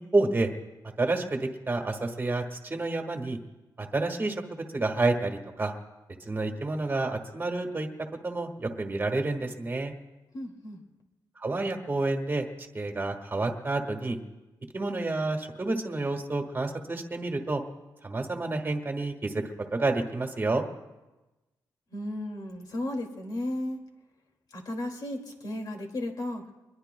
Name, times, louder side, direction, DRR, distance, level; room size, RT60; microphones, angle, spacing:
voice 1, 0.1-0.5 1.0-3.4 3.8-5.7 6.2-7.9 8.2-9.9 11.4-12.4 12.7-14.2 14.7-17.6 18.0-19.4 19.7-20.6, right 2 dB, 25° right, 4 dB, 1.6 m, -29 dB
voice 2, 10.3-10.8 21.9-23.8 24.5-26.4, left 1 dB, 55° left, 2 dB, 2.3 m, -34 dB
24.5 x 21.5 x 2.3 m, 1.1 s
wide cardioid pair, 140°, 8 cm